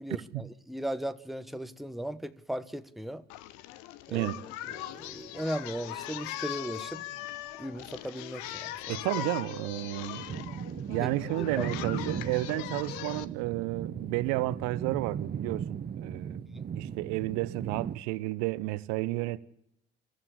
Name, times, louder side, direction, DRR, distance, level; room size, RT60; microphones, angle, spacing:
voice 1, 0.0-3.2 4.1-4.3 4.7-7.0 7.6-9.0 11.0-11.1 11.4-11.7 16.3-16.7, right 1 dB, ahead, 1.4 m, -37 dB
Singing, 3.3-13.2, left 14 dB, 65° left, 1.1 m, -40 dB
voice 2, 4.1-4.4 8.9-10.2 10.9-16.4 16.8-19.4, right 20 dB, 65° right, 1.0 m, -32 dB
sound 1, 10.2-18.0, right 7 dB, 35° right, 0.9 m, -37 dB
25.0 x 15.0 x 10.0 m
figure-of-eight pair, 50°, 30 cm